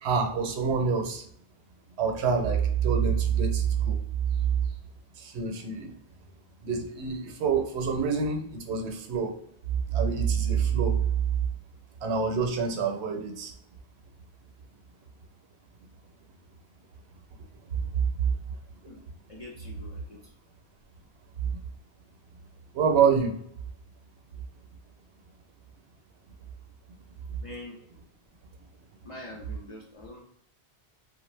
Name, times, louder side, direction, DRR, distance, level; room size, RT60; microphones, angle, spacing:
voice 1, 0.0-1.2 2.0-4.0 5.2-5.9 6.6-9.4 9.9-11.0 12.0-13.5 17.9-18.4 22.7-23.4, right 6 dB, 85° right, 3 dB, 0.9 m, -26 dB
voice 2, 19.3-20.2 27.4-27.8 29.0-30.2, left 2 dB, 55° left, -3 dB, 0.4 m, -44 dB
2.4 x 2.0 x 3.1 m, 0.68 s
omnidirectional pair, 1.1 m